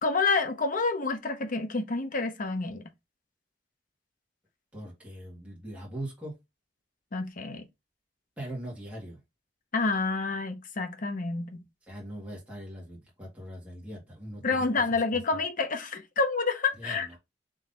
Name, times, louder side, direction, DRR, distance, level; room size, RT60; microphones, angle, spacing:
voice 1, 0.0-2.9 7.1-7.6 9.7-11.6 14.4-17.1, left 4 dB, 50° left, 0.8 m, -28 dB
voice 2, 4.7-6.3 8.4-9.2 11.9-14.7 16.8-17.2, right 1 dB, 10° right, 1.7 m, -41 dB
3.9 x 3.2 x 3.9 m
head